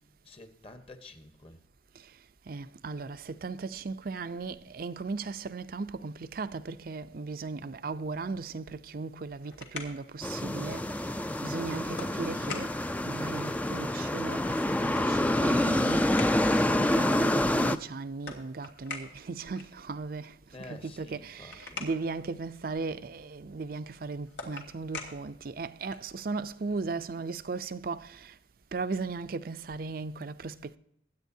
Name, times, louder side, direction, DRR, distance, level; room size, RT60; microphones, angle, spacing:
voice 1, 0.2-1.6 20.5-21.9, left 2 dB, 30° left, 1.1 m, -49 dB
voice 2, 2.5-10.9 11.4-12.7 13.0-16.1 16.6-20.3 20.6-28.3 28.7-30.8, right 4 dB, 55° right, 0.5 m, -37 dB
sound 1, 9.1-26.2, left 3 dB, 85° left, 2.2 m, -47 dB
sound 2, 10.2-17.8, left 1 dB, 10° left, 0.4 m, -27 dB
22.0 x 9.0 x 2.7 m
head